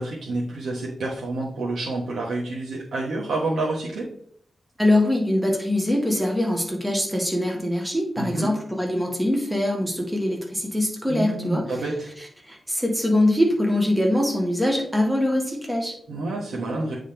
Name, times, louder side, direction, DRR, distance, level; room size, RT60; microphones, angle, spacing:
voice 1, 0.0-4.1 8.2-8.5 11.1-12.1 16.1-16.9, right 2 dB, 85° right, -5 dB, 1.2 m, -28 dB
voice 2, 4.8-11.6 12.5-15.9, left 1 dB, 10° right, 0 dB, 1.4 m, -23 dB
8.8 x 3.9 x 3.4 m, 0.63 s
wide cardioid pair, 110°, 0 cm